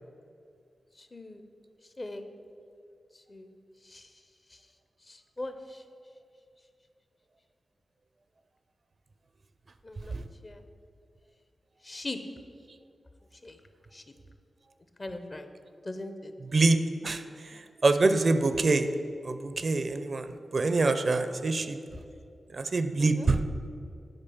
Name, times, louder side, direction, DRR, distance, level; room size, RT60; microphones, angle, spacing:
voice 1, 1.0-1.4 2.0-2.3 3.3-3.5 3.9-4.0 5.1-5.8 9.8-10.1 10.4-10.6 11.8-12.2 13.4-13.6 13.9-14.0 15.0-15.5 15.8-16.3 23.0-23.3, left 2 dB, 30° left, 8 dB, 0.6 m, -40 dB
voice 2, 16.4-18.9 19.2-21.8 22.5-23.4, right 3 dB, 45° right, 10 dB, 0.4 m, -26 dB
8.8 x 4.1 x 7.0 m, 2.4 s
wide cardioid pair, 115°, 0 cm